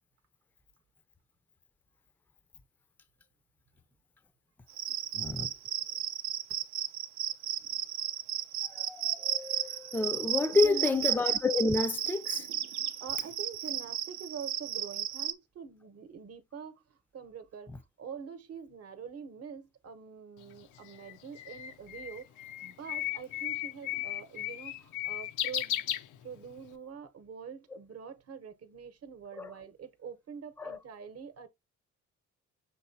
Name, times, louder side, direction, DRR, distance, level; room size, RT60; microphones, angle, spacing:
Cricket, 4.7-15.3, right 11 dB, 70° right, 0.6 m, -33 dB
voice 1, 5.1-5.5 8.7-12.5 29.3-29.5 30.6-30.8, left 3 dB, 5° left, 0.4 m, -29 dB
voice 2, 10.5-11.0 12.7-17.7 18.0-25.8 26.2-31.5, right 7 dB, 50° right, 0.9 m, -45 dB
Bird, 20.4-26.7, left 13 dB, 85° left, 0.6 m, -36 dB
6.0 x 3.1 x 2.7 m
cardioid pair, 90°, 30 cm